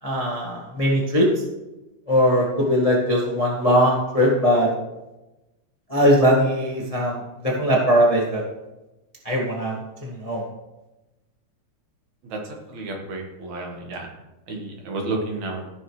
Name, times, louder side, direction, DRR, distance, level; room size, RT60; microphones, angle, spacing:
voice 1, 0.0-1.3 2.1-4.7 5.9-7.2 7.4-8.4 9.2-10.4, equal, 25° left, -3 dB, 0.8 m, -20 dB
voice 2, 12.7-14.1 14.5-15.6, right 2 dB, 65° right, 1 dB, 2.7 m, -31 dB
15.0 x 6.8 x 3.2 m, 1.0 s
omnidirectional pair, 3.7 m